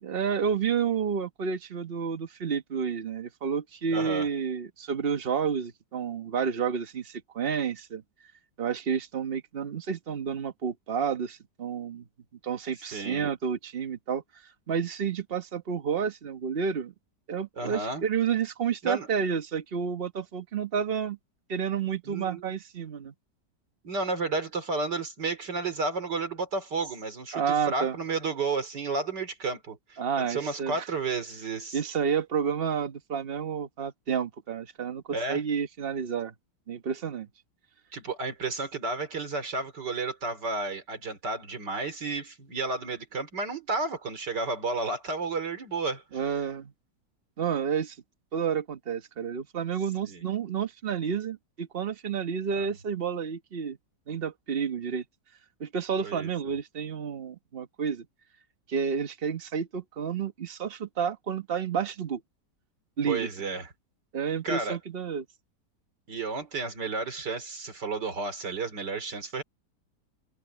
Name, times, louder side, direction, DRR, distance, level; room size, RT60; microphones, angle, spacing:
voice 1, 0.0-8.0 8.6-12.0 12.4-14.2 14.7-16.9 17.3-21.2 21.5-23.1 27.3-28.0 30.0-30.8 31.7-36.3 36.7-37.3 46.1-46.7 47.4-48.0 48.3-53.8 54.1-55.0 55.6-58.1 58.7-62.2 63.0-63.3 64.1-65.2, right 7 dB, 40° right, 1.2 m, -30 dB
voice 2, 3.9-4.3 12.8-13.3 17.6-18.0 18.8-19.1 22.0-22.5 23.8-31.8 35.1-35.4 37.9-46.0 50.1-50.2 52.6-52.7 56.0-56.3 63.1-63.7 64.4-64.8 66.1-69.4, right 3 dB, 80° right, 3.8 m, -32 dB
omnidirectional pair, 1.8 m